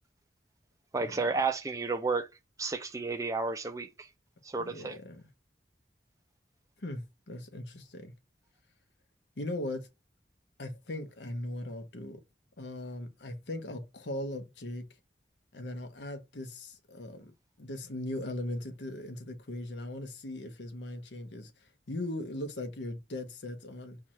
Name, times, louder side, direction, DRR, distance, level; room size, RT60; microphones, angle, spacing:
voice 1, 0.9-2.3 2.6-3.9 4.4-5.0, right 4 dB, 20° right, 0.4 m, -31 dB
voice 2, 4.6-5.2 6.8-8.1 9.4-9.9 10.6-12.2 12.6-14.9 15.5-17.3 17.6-24.0, left 1 dB, 80° left, 0.9 m, -39 dB
4.6 x 2.4 x 4.2 m
head